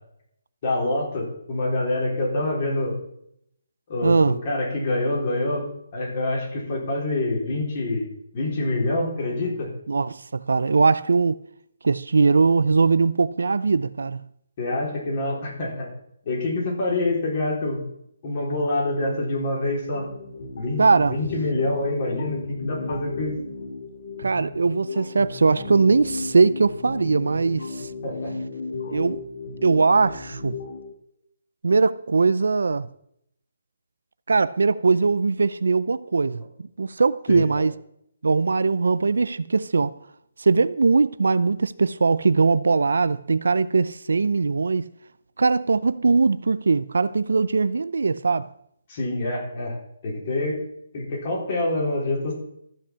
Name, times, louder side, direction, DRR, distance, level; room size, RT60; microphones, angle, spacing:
voice 1, 0.6-3.0 3.9-5.7 5.9-8.1 8.3-9.7 14.6-15.9 16.3-17.8 18.2-20.1 20.5-20.8 21.1-23.4 28.0-28.3 37.3-37.4 48.9-49.8 50.0-50.6 50.9-52.4, left 2 dB, 30° left, 4.0 m, -26 dB
voice 2, 4.0-4.4 9.9-11.4 11.8-14.2 20.8-21.2 24.2-27.9 28.9-29.2 29.6-30.6 31.6-32.9 34.3-37.7 38.2-39.9 40.4-44.9 45.4-48.5, right 4 dB, 85° right, 0.5 m, -20 dB
sound 1, 19.9-30.9, left 3 dB, 45° left, 1.8 m, -34 dB
13.5 x 5.6 x 7.0 m
hypercardioid pair, 175°, 0 cm